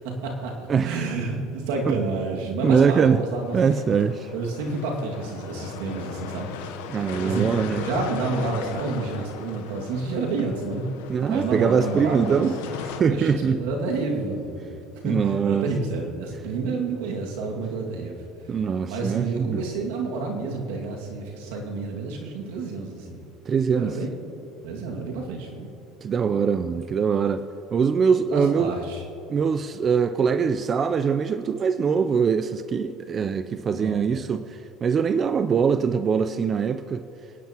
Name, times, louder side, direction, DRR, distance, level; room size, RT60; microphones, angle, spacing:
voice 1, 0.0-3.6 4.3-6.5 7.2-10.9 11.3-12.5 13.0-14.8 15.0-18.2 18.9-23.2 23.7-24.1 24.6-25.7 28.3-29.0 33.7-34.0, right 3 dB, 80° right, 0 dB, 2.2 m, -29 dB
voice 2, 0.7-1.1 1.9-2.0 2.6-3.2 3.5-4.3 6.9-7.9 11.1-12.5 12.8-13.6 15.0-15.7 18.5-19.6 23.5-24.0 26.0-27.4 27.7-28.7 29.3-37.0, right 6 dB, 35° right, 11 dB, 0.5 m, -23 dB
sound 1, 3.4-13.0, left 7 dB, 85° left, 0.9 m, -37 dB
27.5 x 9.4 x 3.0 m, 2.9 s
supercardioid pair, 100°, 0 cm